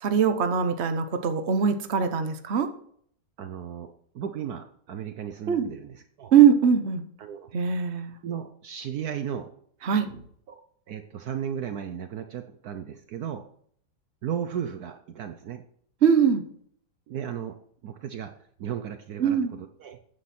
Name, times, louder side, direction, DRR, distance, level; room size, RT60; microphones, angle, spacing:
voice 1, 0.0-2.7 5.5-5.7 6.3-7.0 7.5-8.1 9.8-10.2 16.0-16.4 19.2-19.5, right 7 dB, 45° right, 8 dB, 1.2 m, -21 dB
voice 2, 3.4-6.3 7.2-7.5 8.2-9.5 10.5-10.6 10.9-13.4 14.2-15.6 17.1-17.6 17.8-18.3 18.6-20.0, right 8 dB, 65° right, 8 dB, 1.2 m, -35 dB
14.5 x 9.7 x 4.4 m, 0.63 s
omnidirectional pair, 1.9 m